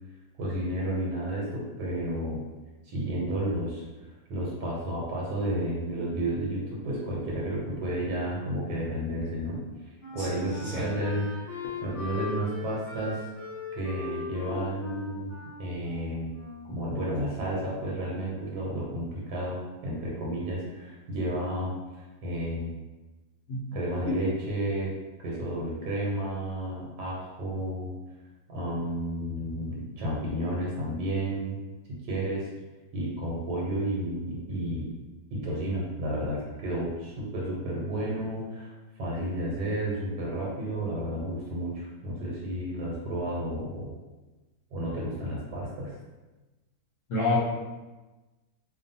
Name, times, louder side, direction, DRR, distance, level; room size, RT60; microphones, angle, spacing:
voice 1, 0.4-2.5 2.8-3.8 4.3-9.6 10.1-13.3 13.7-15.3 15.6-16.3 16.7-22.7 23.7-24.9 25.2-28.0 28.5-31.6 31.9-32.5 32.9-34.9 35.3-38.7 39.0-44.0 44.7-45.9, right 1 dB, 85° right, -5 dB, 1.2 m, -32 dB
Wind instrument woodwind instrument, 9.6-16.8, left 4 dB, 25° left, 0.9 m, -39 dB
voice 2, 10.2-10.9 23.5-23.6 24.1-24.2 47.1-47.4, left 2 dB, 65° left, -8 dB, 0.9 m, -28 dB
2.6 x 2.3 x 2.6 m, 1.2 s
omnidirectional pair, 1.7 m